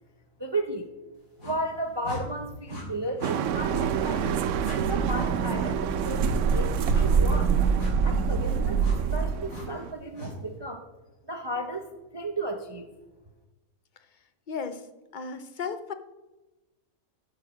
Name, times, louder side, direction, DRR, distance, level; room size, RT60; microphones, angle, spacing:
voice 1, 0.4-0.9 1.4-4.3 4.8-7.5 8.0-8.8 9.1-10.9 11.3-11.9 12.1-12.9, right 1 dB, 25° right, 6 dB, 0.6 m, -34 dB
sound 1, 1.4-1.6 2.0-2.2 2.7-2.8 3.2-3.3 3.7-3.9 4.1-4.3 4.6-4.8 5.1-5.3 6.0-6.2 6.9-7.1 7.8-7.9 8.8-9.0 9.5-9.7 10.1-10.3, left 1 dB, 70° left, 3.6 m, -38 dB
Truck, 3.2-9.9, right 8 dB, 65° right, 0.9 m, -31 dB
sound 2, 3.5-9.4, right 5 dB, 85° right, 1.4 m, -26 dB
voice 2, 14.5-14.8 15.1-15.9, left 5 dB, 45° left, 9 dB, 0.7 m, -34 dB
12.0 x 6.6 x 6.0 m, 1.1 s
omnidirectional pair, 1.5 m